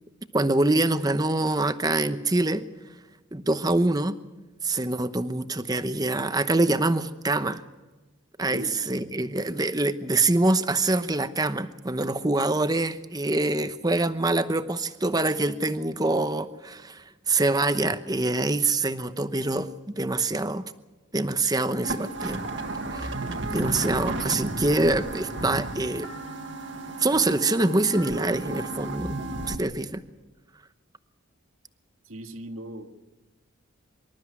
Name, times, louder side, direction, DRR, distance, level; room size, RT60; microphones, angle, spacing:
voice 1, 0.3-2.7 3.3-4.2 4.6-7.6 8.4-20.6 21.1-22.4 22.9-23.1 23.4-26.1 27.0-29.2 29.5-30.0, right 2 dB, 20° right, 11 dB, 0.9 m, -25 dB
voice 2, 8.5-9.1 32.0-33.1, right 1 dB, 80° right, 4 dB, 2.0 m, -39 dB
sound 1, 21.8-29.5, right 2 dB, 55° right, 1.8 m, -33 dB
25.5 x 13.0 x 9.7 m, 1.2 s
head